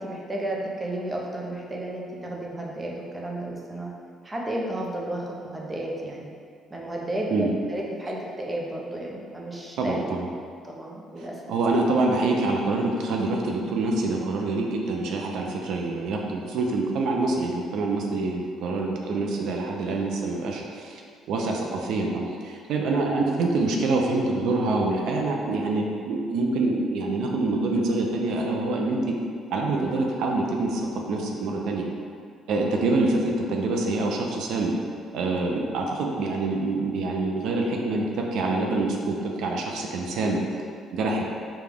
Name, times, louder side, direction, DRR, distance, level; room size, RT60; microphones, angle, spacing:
voice 1, 0.0-3.9 4.2-6.3 6.7-10.0 10.6-11.4, right 1 dB, 20° right, -2 dB, 0.6 m, -32 dB
voice 2, 9.8-10.3 11.2-21.0 21.3-29.0 29.5-31.8 32.5-34.7 35.1-40.4 40.9-41.3, right 2 dB, 75° right, 0 dB, 0.5 m, -26 dB
5.1 x 2.3 x 3.5 m, 2.2 s
cardioid pair, 120°, 0 cm